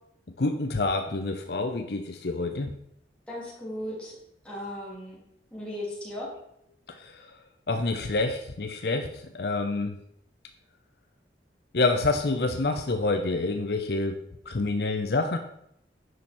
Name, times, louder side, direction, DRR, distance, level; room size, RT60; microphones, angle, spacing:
voice 1, 0.4-2.7 7.0-7.1 7.7-10.0 11.7-15.4, left 3 dB, 65° left, 6 dB, 0.6 m, -27 dB
voice 2, 3.3-4.2 4.4-5.2 5.5-6.3, left 1 dB, 5° left, -6 dB, 3.0 m, -36 dB
9.4 x 6.0 x 4.3 m, 0.75 s
head